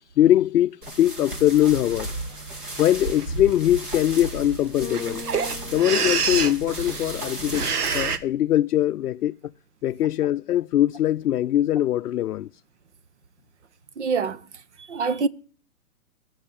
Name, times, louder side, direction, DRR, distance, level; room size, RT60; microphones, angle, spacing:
voice 1, 0.2-2.1 2.8-5.2 5.7-7.7 7.9-9.4 9.8-12.5, left 12 dB, 75° left, 0.5 m, -21 dB
sound 1, 0.8-8.2, right 1 dB, 35° right, 2.2 m, -34 dB
sound 2, 1.3-1.4 1.9-2.3 3.0-3.3 3.5-3.6 3.8-8.2, right 6 dB, 80° right, 1.5 m, -28 dB
Bass guitar, 4.8-7.1, left 4 dB, 20° left, 1.2 m, -40 dB
voice 2, 14.0-14.4 14.9-15.3, right 5 dB, 50° right, 0.7 m, -24 dB
15.5 x 5.8 x 8.6 m
hypercardioid pair, 180°, 46 cm